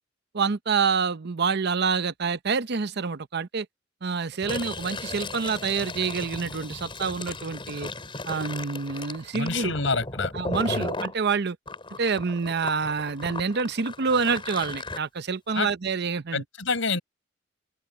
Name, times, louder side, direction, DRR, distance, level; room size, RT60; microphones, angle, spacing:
voice 1, 0.3-3.7 4.0-7.9 8.3-9.7 10.3-11.6 12.0-16.4, right 5 dB, 60° right, 0.7 m, -27 dB
Fill (with liquid), 4.3-11.1 11.7-15.0, left 2 dB, 25° left, 5.3 m, -36 dB
voice 2, 9.3-10.3 10.6-10.9 15.5-15.7 16.3-17.0, left 4 dB, 80° left, 4.8 m, -27 dB
open air
head